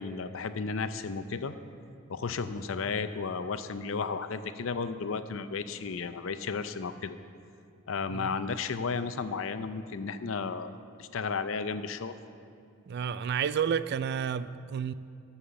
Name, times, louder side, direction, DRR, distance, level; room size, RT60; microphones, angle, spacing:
voice 1, 0.0-1.5 2.1-7.2 7.9-10.7 11.0-12.1, left 5 dB, 70° left, 11 dB, 0.5 m, -33 dB
voice 2, 12.9-14.9, right 7 dB, 55° right, 15 dB, 0.3 m, -30 dB
12.5 x 5.7 x 6.9 m, 2.5 s
head